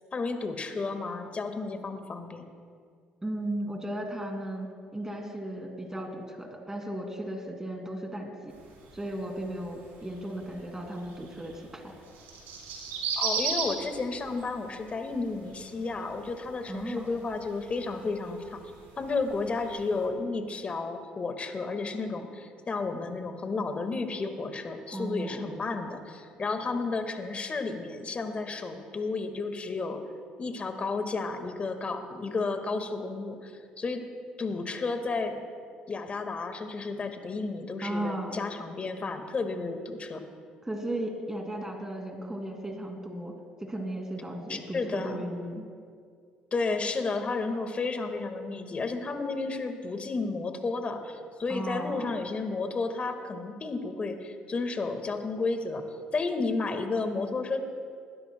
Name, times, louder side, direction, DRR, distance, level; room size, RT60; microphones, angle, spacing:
voice 1, 0.1-2.4 13.2-18.7 19.0-30.0 30.4-34.0 34.4-35.4 35.9-40.2 44.5-45.2 46.5-55.9 56.1-57.6, left 3 dB, 35° left, 6 dB, 1.8 m, -32 dB
voice 2, 3.2-8.5 8.9-11.9 16.7-17.1 24.9-25.6 37.8-38.4 40.6-43.3 43.6-45.7 51.5-52.2, right 1 dB, 15° right, 2 dB, 2.6 m, -35 dB
sound 1, 8.5-20.1, right 5 dB, 65° right, 3.6 m, -39 dB
20.5 x 16.5 x 2.3 m, 2.2 s
hypercardioid pair, 55°, 4 cm